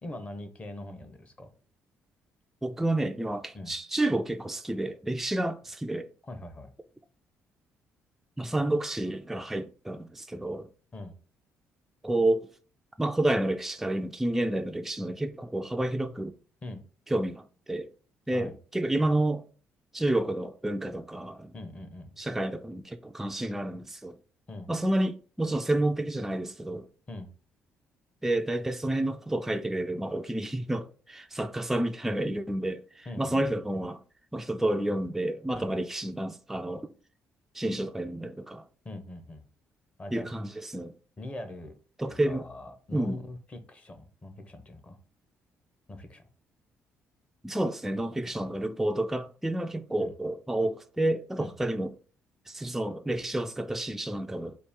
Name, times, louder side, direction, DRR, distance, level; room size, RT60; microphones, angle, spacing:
voice 1, 0.0-1.5 3.5-3.7 6.2-6.7 10.9-11.1 16.6-16.8 18.3-18.5 21.5-22.2 24.5-24.7 27.1-27.3 33.1-33.8 35.5-35.7 38.8-39.4 40.0-40.3 41.2-41.7 42.0-45.0 45.9-46.2 48.2-48.6 50.0-50.1 51.4-51.5, left 1 dB, 30° left, 0.8 m, -42 dB
voice 2, 2.6-6.1 8.4-10.7 12.0-12.5 13.0-16.3 17.1-17.9 18.3-19.5 19.9-21.5 22.2-24.2 24.7-26.9 28.2-34.0 34.3-36.9 37.5-38.7 40.1-40.9 42.0-42.5 42.9-43.2 47.4-51.9 52.5-54.6, right 1 dB, 5° right, 0.3 m, -30 dB
4.2 x 2.4 x 3.5 m
cardioid pair, 95°, 5 cm